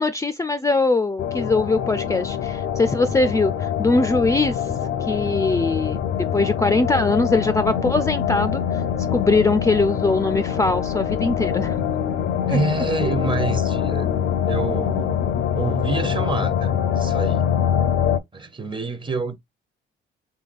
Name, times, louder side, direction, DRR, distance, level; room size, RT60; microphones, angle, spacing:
voice 1, 0.0-4.6 5.0-6.0 6.3-8.8 9.1-11.8 12.5-12.6, left 3 dB, 15° left, 0.4 m, -21 dB
sound 1, 1.2-18.2, left 9 dB, 65° left, 0.6 m, -24 dB
voice 2, 12.5-14.1 14.5-15.2 15.5-17.4 18.3-19.4, right 3 dB, 25° right, 0.7 m, -27 dB
3.8 x 3.4 x 2.5 m
cardioid pair, 90°, 20 cm